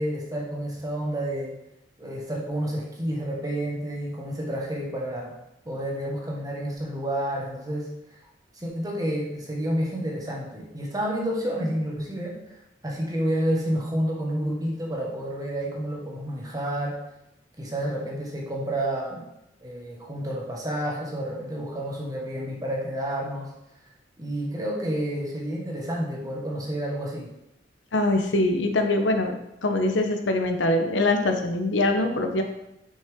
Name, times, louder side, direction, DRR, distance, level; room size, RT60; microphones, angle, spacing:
voice 1, 0.0-1.5 2.0-5.3 5.6-7.9 8.5-17.0 17.6-19.2 19.6-23.5 24.2-27.3, right 1 dB, 20° right, -2 dB, 1.5 m, -30 dB
voice 2, 27.9-29.3 29.6-32.4, left 2 dB, 80° left, 5 dB, 0.8 m, -23 dB
6.3 x 5.6 x 3.6 m, 0.85 s
head